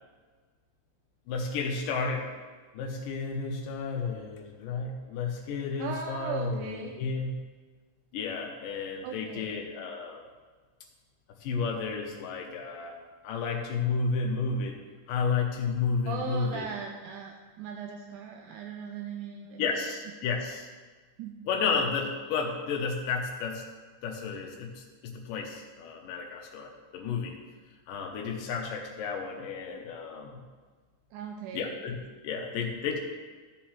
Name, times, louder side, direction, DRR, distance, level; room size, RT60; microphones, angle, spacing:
voice 1, 1.3-2.3 2.7-7.3 8.1-10.2 11.4-13.0 13.2-14.8 15.1-16.7 19.6-20.7 21.5-23.6 24.0-27.3 27.9-30.4 31.5-32.0 32.2-33.0, left 5 dB, 90° left, 0 dB, 2.6 m, -32 dB
voice 2, 5.8-6.9 9.0-9.5 16.1-19.7 21.2-21.4 31.1-31.7, right 7 dB, 80° right, 3 dB, 2.0 m, -38 dB
13.5 x 7.3 x 3.2 m, 1.4 s
omnidirectional pair, 3.8 m